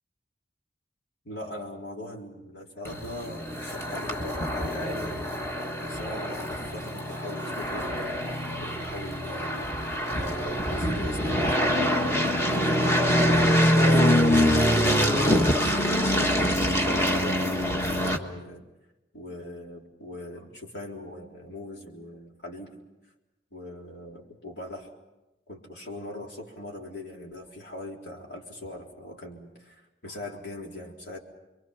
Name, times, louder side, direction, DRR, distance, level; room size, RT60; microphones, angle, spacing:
voice 1, 1.2-5.3 5.8-8.1 8.6-9.7 10.1-14.5 15.0-18.6 19.1-22.8 23.5-24.9 25.5-31.2, left 1 dB, 75° left, -1 dB, 3.9 m, -40 dB
sound 1, 2.8-18.2, equal, 15° left, 1.4 m, -25 dB
28.5 x 23.0 x 5.8 m, 1.0 s
head